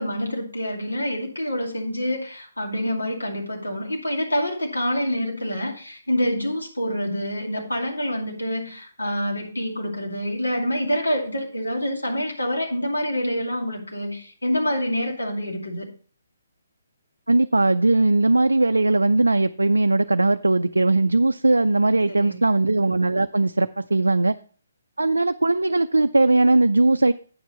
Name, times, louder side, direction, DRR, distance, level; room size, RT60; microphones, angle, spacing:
voice 1, 0.0-15.9 21.9-22.5, equal, 85° left, 2.4 m, -27 dB
voice 2, 17.3-24.4 25.0-27.1, right 2 dB, 80° right, 0.3 m, -19 dB
9.2 x 5.9 x 4.2 m
figure-of-eight pair, 140°, 0 cm